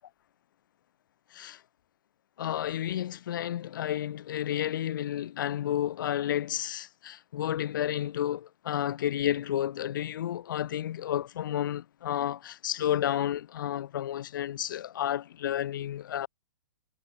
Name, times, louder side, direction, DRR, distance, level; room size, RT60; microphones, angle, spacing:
voice 1, 1.3-1.6 2.4-16.3, left 11 dB, 65° left, 1.0 m, -31 dB
hypercardioid pair, 160°, 11 cm